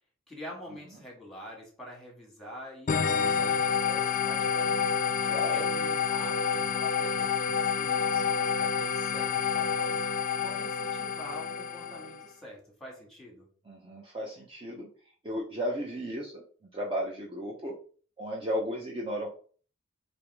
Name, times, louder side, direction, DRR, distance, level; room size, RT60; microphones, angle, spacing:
voice 1, 0.3-4.9 5.5-10.0 10.4-13.5, equal, ahead, -2 dB, 1.7 m, -46 dB
sound 1, 2.9-12.2, left 6 dB, 40° left, 0.3 m, -28 dB
voice 2, 5.2-5.6 13.7-14.9 15.2-16.4 16.7-17.7 18.2-19.3, equal, 25° right, -2 dB, 0.7 m, -34 dB
3.4 x 3.0 x 4.6 m, 0.43 s
head